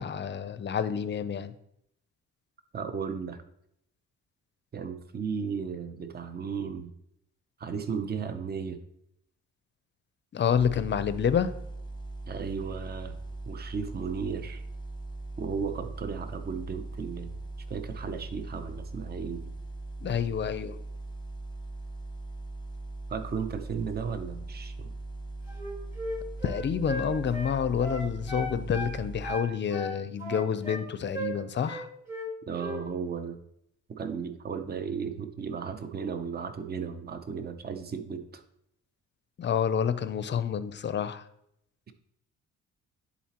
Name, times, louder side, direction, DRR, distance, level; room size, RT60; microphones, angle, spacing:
voice 1, 0.0-1.5 10.3-11.5 20.0-20.7 26.4-31.9 39.4-41.2, left 8 dB, 35° left, 13 dB, 0.5 m, -28 dB
voice 2, 2.7-3.4 4.7-6.9 7.6-8.8 12.3-13.2 13.5-14.6 15.4-17.4 17.7-19.5 23.1-24.9 32.5-33.4 33.9-38.4, right 6 dB, 30° right, 9 dB, 0.7 m, -35 dB
sound 1, 10.5-29.3, right 2 dB, 15° left, 0.9 m, -40 dB
Wind instrument woodwind instrument, 25.5-28.9 29.2-30.8 31.1-31.4 31.7-32.3 32.6-32.8, right 1 dB, 10° right, 1.7 m, -36 dB
10.0 x 4.1 x 2.9 m, 0.75 s
cardioid pair, 90°, 30 cm